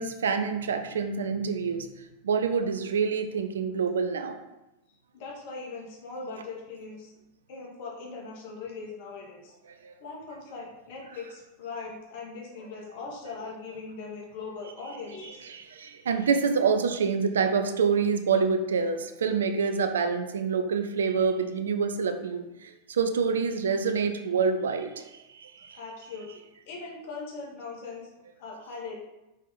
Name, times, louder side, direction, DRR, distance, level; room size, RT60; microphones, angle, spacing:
voice 1, 0.0-1.9 2.2-4.4 9.7-9.9 15.5-25.8, right 5 dB, 65° right, 7 dB, 0.6 m, -27 dB
voice 2, 5.1-7.1 7.5-9.5 10.0-15.5 25.7-28.1 28.4-29.0, left 4 dB, 50° left, -2 dB, 2.0 m, -40 dB
5.5 x 5.1 x 4.0 m, 0.95 s
figure-of-eight pair, 90°, 0 cm